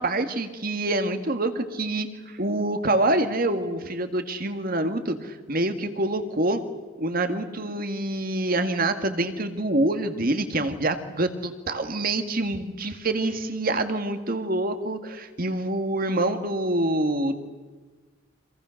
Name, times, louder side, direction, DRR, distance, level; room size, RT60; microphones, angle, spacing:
voice 1, 0.0-2.1 2.3-6.6 7.0-17.4, right 2 dB, 45° right, 8 dB, 2.0 m, -26 dB
29.0 x 26.5 x 6.6 m, 1.4 s
head